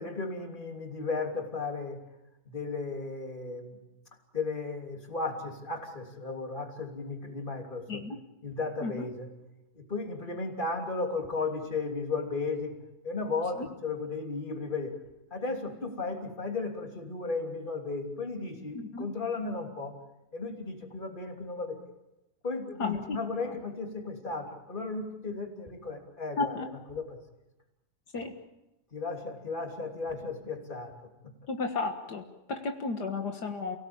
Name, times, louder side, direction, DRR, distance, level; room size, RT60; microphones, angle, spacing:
voice 1, 0.0-2.0 2.4-3.9 4.3-8.0 8.4-9.3 9.7-12.8 13.0-14.9 15.3-20.0 20.3-21.8 22.4-27.2 28.1-28.3 28.9-30.9 31.2-31.3, left 3 dB, 30° left, 3 dB, 3.2 m, -35 dB
voice 2, 18.7-19.1 22.8-23.2 23.4-23.6 26.4-26.7 28.1-28.4 31.5-33.8, left 3 dB, 75° left, 4 dB, 2.2 m, -33 dB
29.5 x 17.5 x 8.8 m, 0.96 s
omnidirectional pair, 1.8 m